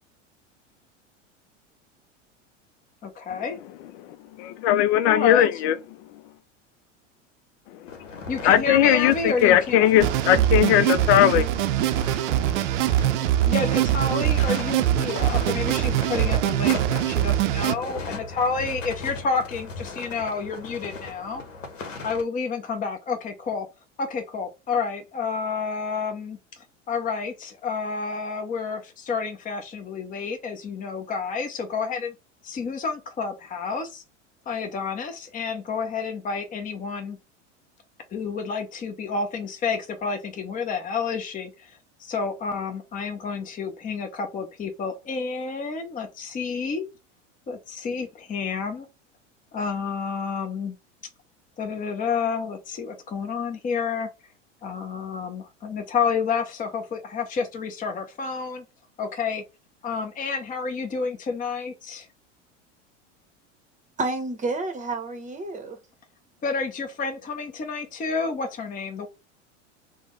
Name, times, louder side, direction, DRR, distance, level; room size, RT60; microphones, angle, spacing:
voice 1, 3.0-3.6 5.1-5.5 8.3-9.9 13.4-21.4 22.0-23.7 24.0-26.4 26.9-32.1 32.4-34.0 34.5-37.2 38.1-41.7 42.0-46.8 47.5-48.9 49.5-50.8 51.6-54.1 54.6-58.7 59.0-59.4 59.8-62.1 66.4-69.1, left 5 dB, 20° left, 0.7 m, -29 dB
voice 2, 4.4-5.7 8.4-11.5 11.8-11.9 12.3-12.5, left 12 dB, 60° left, 0.5 m, -19 dB
sound 1, 7.9-22.2, left 3 dB, 85° left, 0.9 m, -38 dB
sound 2, 10.0-17.7, right 12 dB, 70° right, 0.5 m, -23 dB
voice 3, 64.0-65.8, right 3 dB, 20° right, 0.9 m, -29 dB
3.4 x 2.2 x 3.1 m
hypercardioid pair, 90°, 37 cm